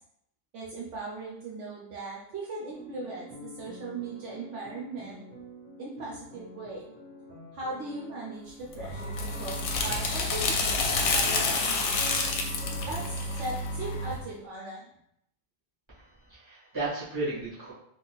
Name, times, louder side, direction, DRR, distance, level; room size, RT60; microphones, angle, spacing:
voice 1, 0.5-5.2 5.8-6.9 7.5-11.7 12.9-14.9, right 2 dB, 75° right, -5 dB, 1.0 m, -38 dB
sound 1, 2.7-13.1, left 3 dB, 40° right, 1.1 m, -48 dB
sound 2, 8.7-14.2, left 3 dB, 75° left, 0.9 m, -29 dB
voice 2, 15.9-17.7, right 2 dB, 20° right, -10 dB, 1.6 m, -34 dB
3.9 x 2.5 x 2.3 m, 0.74 s
omnidirectional pair, 1.3 m